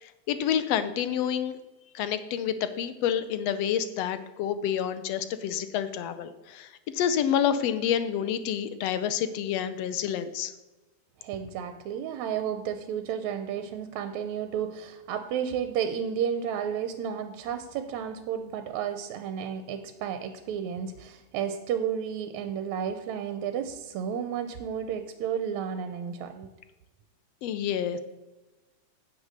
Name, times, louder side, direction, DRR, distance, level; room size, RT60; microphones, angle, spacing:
voice 1, 0.0-1.6 2.0-6.7 6.9-10.5 27.4-28.0, left 9 dB, 70° left, 12 dB, 1.7 m, -28 dB
voice 2, 11.2-26.5, right 8 dB, 80° right, 8 dB, 2.1 m, -32 dB
9.4 x 7.5 x 6.5 m, 1.1 s
omnidirectional pair, 3.3 m